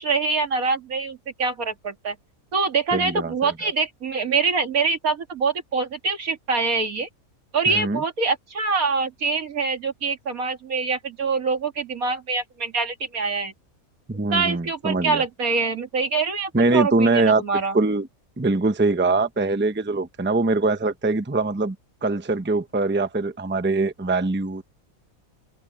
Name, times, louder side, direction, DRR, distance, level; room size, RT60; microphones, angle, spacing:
voice 1, 0.0-2.2 2.5-7.1 7.5-13.5 14.3-17.8, right 4 dB, 75° right, 2.6 m, -25 dB
voice 2, 2.9-3.7 7.7-8.0 14.1-15.2 16.5-17.4 17.7-18.1 18.4-21.8 22.0-24.6, right 3 dB, 10° right, 0.8 m, -23 dB
open air
omnidirectional pair, 1.5 m